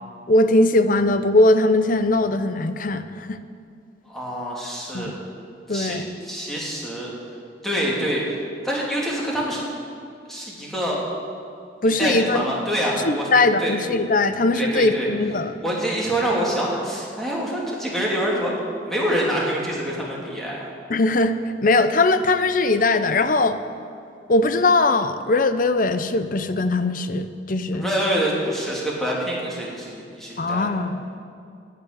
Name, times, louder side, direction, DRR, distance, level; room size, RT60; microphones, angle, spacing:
voice 1, 0.3-3.4 4.9-5.1 5.7-6.1 11.8-12.4 12.9-15.6 20.9-21.4 21.6-23.6 24.3-27.9 30.4-31.0, left 2 dB, 50° left, 11 dB, 0.7 m, -20 dB
voice 2, 4.1-5.2 5.7-7.1 7.6-8.2 8.6-9.7 10.3-11.0 11.8-13.3 13.6-13.7 14.5-15.1 15.6-18.5 18.9-20.7 27.7-30.8, equal, ahead, -4 dB, 3.2 m, -26 dB
12.0 x 9.9 x 9.7 m, 2.4 s
head